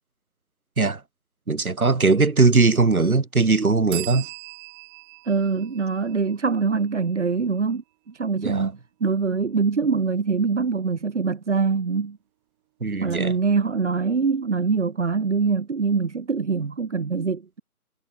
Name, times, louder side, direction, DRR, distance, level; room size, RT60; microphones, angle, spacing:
voice 1, 1.5-4.3 8.4-8.7 12.8-13.4, right 3 dB, 70° right, 4.3 m, -20 dB
sound 1, 3.9-7.5, right 30 dB, 15° right, 6.7 m, -40 dB
voice 2, 5.3-12.2 13.0-17.6, right 5 dB, 50° right, 1.6 m, -24 dB
figure-of-eight pair, 160°, 45 cm